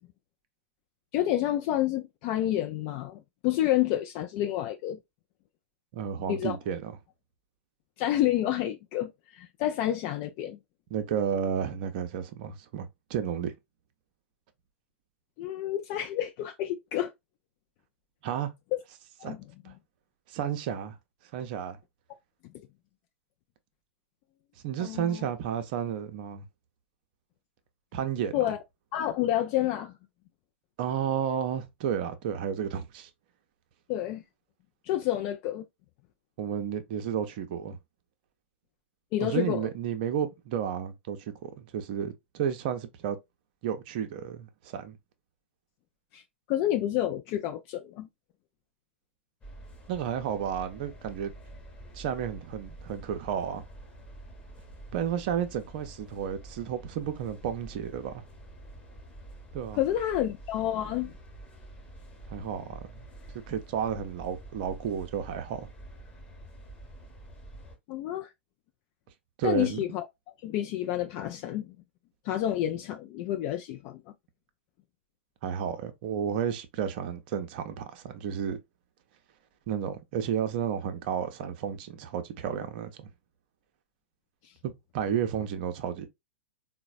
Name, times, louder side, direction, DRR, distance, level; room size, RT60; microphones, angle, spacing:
voice 1, 1.1-5.0 6.3-6.6 8.0-10.6 15.4-17.1 18.7-18.8 19.2-19.4 19.7-19.8 24.8-25.2 28.3-28.6 28.9-30.0 33.9-34.2 34.8-35.6 39.1-39.7 46.1-46.2 46.5-48.1 59.8-61.2 67.9-68.3 69.4-70.1 70.4-71.8 72.2-74.0 84.4-84.5, left 13 dB, 40° left, 0.3 m, -29 dB
voice 2, 5.9-6.9 10.9-13.5 18.2-18.5 19.2-19.4 19.6-19.7 20.3-21.0 21.3-21.8 24.6-26.5 27.9-28.5 30.8-33.1 36.4-37.8 39.2-43.2 43.6-45.0 49.9-51.3 51.9-53.6 54.9-58.2 59.5-59.8 62.3-63.1 63.5-65.7 69.4-69.8 75.4-78.6 79.7-83.1 84.6-86.1, right 8 dB, 45° right, 0.6 m, -32 dB
sound 1, 49.4-67.8, right 1 dB, 20° left, 1.0 m, -47 dB
3.9 x 2.1 x 2.4 m
figure-of-eight pair, 100°, 7 cm